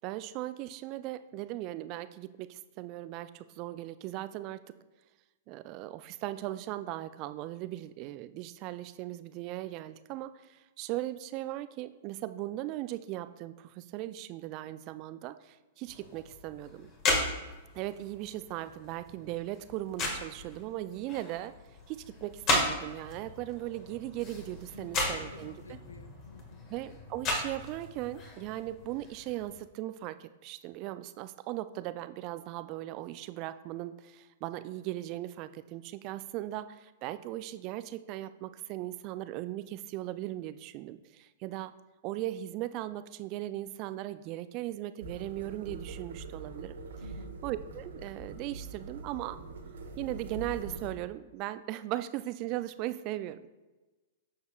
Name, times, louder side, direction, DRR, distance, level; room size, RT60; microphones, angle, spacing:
voice 1, 0.0-4.6 5.5-16.9 17.7-21.5 21.9-25.8 26.7-41.7 42.0-47.1 47.4-49.4 50.0-53.5, right 15 dB, 40° right, 13 dB, 0.4 m, -38 dB
sound 1, 15.9-29.6, left 2 dB, 35° left, 1.7 m, -36 dB
voice 2, 24.7-26.6 47.0-47.4, left 3 dB, 80° left, 11 dB, 0.5 m, -51 dB
sound 2, 45.0-50.9, right 3 dB, 65° right, 1.2 m, -43 dB
10.0 x 6.5 x 2.3 m, 1.2 s
figure-of-eight pair, 105°, 0 cm